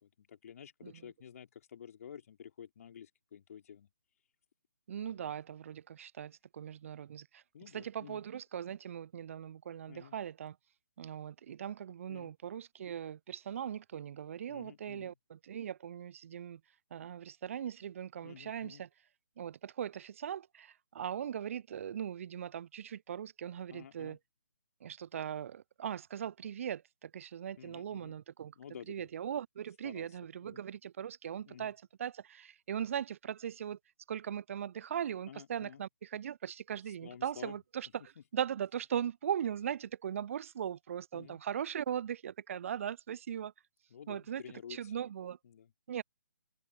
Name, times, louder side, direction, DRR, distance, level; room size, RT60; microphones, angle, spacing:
voice 1, 0.0-3.9 5.1-5.3 7.5-8.2 9.9-10.1 12.1-12.3 14.4-15.1 18.2-18.8 23.7-24.2 27.6-28.2 28.5-29.1 29.8-30.1 30.4-30.6 31.4-31.7 35.3-35.8 37.0-37.6 38.2-38.3 41.1-41.4 43.9-44.9 45.4-45.7, left 8 dB, 45° left, 2.9 m, -51 dB
voice 2, 4.9-7.4 7.7-10.6 11.0-16.6 16.9-18.9 19.4-24.2 24.8-28.5 28.9-33.8 34.1-43.5 44.1-44.4 44.7-45.4 45.9-46.0, right 9 dB, 40° right, 0.5 m, -39 dB
figure-of-eight pair, 140°, 11 cm